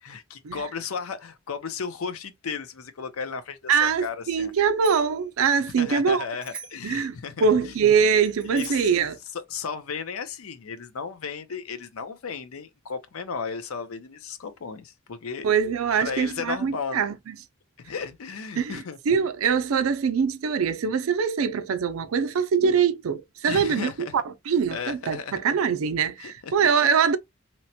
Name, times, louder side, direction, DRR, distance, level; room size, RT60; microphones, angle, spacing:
voice 1, 0.0-4.5 5.6-7.7 8.5-8.9 9.3-15.5 16.0-17.0 17.8-19.0 23.5-24.1 24.7-25.4 26.2-26.5, left 5 dB, 80° left, 0.5 m, -34 dB
voice 2, 3.7-6.2 6.8-9.2 15.4-17.4 18.6-18.8 19.1-27.2, right 6 dB, 80° right, 0.4 m, -23 dB
Bicycle bell, 4.5-5.2 6.4-7.0 8.2-9.0, right 4 dB, 5° right, 0.7 m, -43 dB
3.0 x 2.1 x 2.6 m
head